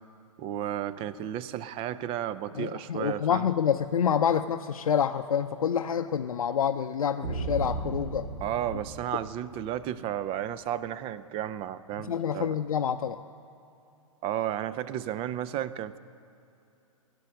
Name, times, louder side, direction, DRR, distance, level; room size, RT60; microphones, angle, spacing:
voice 1, 0.4-3.4 8.4-12.5 14.2-16.0, right 11 dB, 30° right, 14 dB, 0.5 m, -33 dB
voice 2, 2.5-8.3 12.1-13.2, left 8 dB, 85° left, 7 dB, 0.5 m, -27 dB
sound 1, 7.2-9.8, right 2 dB, 60° right, 3.8 m, -35 dB
16.5 x 11.0 x 6.4 m, 2.8 s
hypercardioid pair, 115°, 18 cm